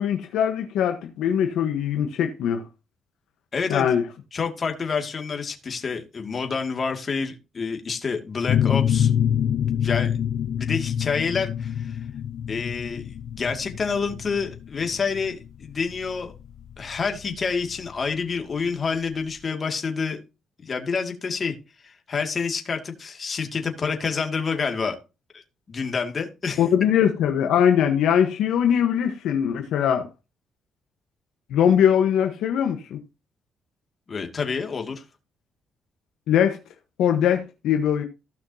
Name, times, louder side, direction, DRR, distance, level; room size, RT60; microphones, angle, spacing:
voice 1, 0.0-2.6 3.7-4.0 26.6-30.1 31.5-33.0 36.3-36.6 37.0-38.0, left 9 dB, 85° left, 1.1 m, -21 dB
voice 2, 3.5-3.9 4.3-9.2 9.8-10.1 10.6-12.0 12.5-16.3 16.8-20.2 20.6-21.6 21.8-25.0 25.3-25.4 25.7-26.6 34.1-35.0, left 5 dB, 40° left, 2.2 m, -28 dB
sound 1, 8.5-17.9, left 9 dB, 65° left, 0.4 m, -26 dB
16.0 x 5.8 x 2.8 m
cardioid pair, 90°, 0 cm